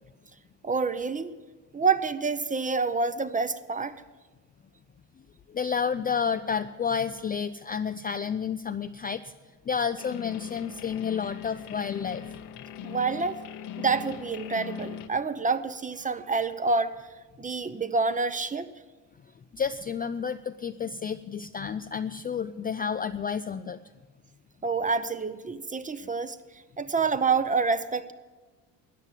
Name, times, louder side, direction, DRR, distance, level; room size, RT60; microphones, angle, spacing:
voice 1, 0.6-1.3 1.7-3.9 12.8-13.4 13.8-16.9 17.4-18.7 24.6-26.4 26.8-28.1, right 4 dB, 20° right, 13 dB, 0.7 m, -27 dB
voice 2, 5.5-9.3 9.7-12.4 19.5-23.8, left 6 dB, 25° left, 10 dB, 0.4 m, -30 dB
sound 1, 10.0-15.1, left 9 dB, 75° left, 1.0 m, -40 dB
13.5 x 9.5 x 8.2 m, 1.3 s
supercardioid pair, 80°, 40 cm